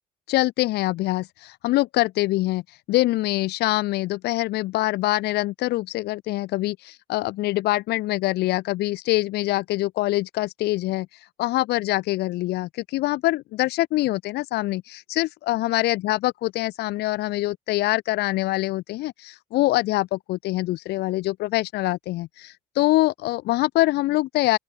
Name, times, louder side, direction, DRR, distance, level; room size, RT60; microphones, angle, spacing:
voice 1, 0.3-24.6, left 18 dB, 75° left, 0.7 m, -24 dB
open air
cardioid pair, 110°, 17 cm